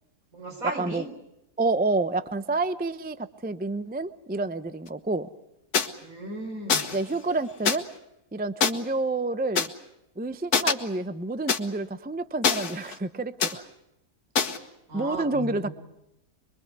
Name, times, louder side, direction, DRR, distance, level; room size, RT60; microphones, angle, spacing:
voice 1, 0.3-1.1 6.0-6.8 14.9-15.7, right 2 dB, 70° right, 4 dB, 4.5 m, -35 dB
voice 2, 1.6-5.3 6.9-7.8 8.3-9.7 10.2-13.7 14.9-15.7, right 3 dB, 10° right, 12 dB, 0.5 m, -29 dB
sound 1, 5.7-5.9 6.7-7.0 7.7-7.8 8.6-8.7 9.6-9.7 10.5-10.7 11.5-11.6 12.4-13.0 13.4-13.5 14.4-14.6, left 6 dB, 85° left, 2.0 m, -24 dB
24.0 x 24.0 x 8.2 m, 0.87 s
omnidirectional pair, 1.6 m